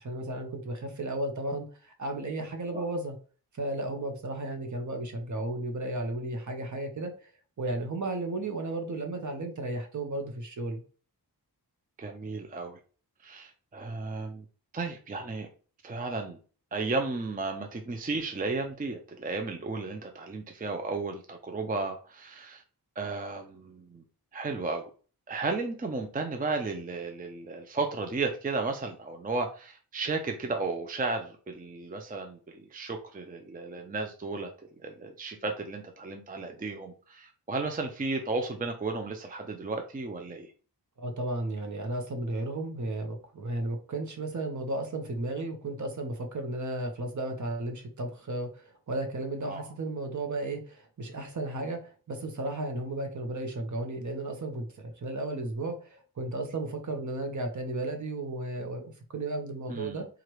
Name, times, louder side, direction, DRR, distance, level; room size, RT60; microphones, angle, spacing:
voice 1, 0.0-3.2 3.6-7.3 7.6-10.8 41.0-60.1, right 2 dB, 50° right, 5 dB, 0.9 m, -34 dB
voice 2, 12.0-12.8 13.2-14.4 14.7-15.5 15.8-16.4 16.7-22.6 23.0-24.0 24.3-24.9 25.3-34.5 34.8-40.5 49.4-49.6 59.7-60.0, right 3 dB, 25° right, 4 dB, 0.5 m, -34 dB
4.6 x 2.5 x 3.0 m, 0.38 s
wide cardioid pair, 110°, 39 cm